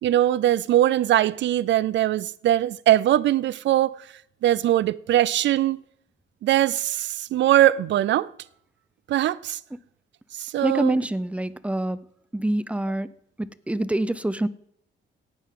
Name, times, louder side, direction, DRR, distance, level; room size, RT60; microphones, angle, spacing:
voice 1, 0.0-4.0 4.4-5.8 6.4-8.3 9.1-9.6 10.4-11.0, right 13 dB, 65° right, 0.5 m, -21 dB
voice 2, 10.6-12.0 12.3-13.1 13.4-14.5, right 1 dB, 5° right, 0.6 m, -25 dB
17.5 x 9.4 x 3.8 m
cardioid pair, 90°, 20 cm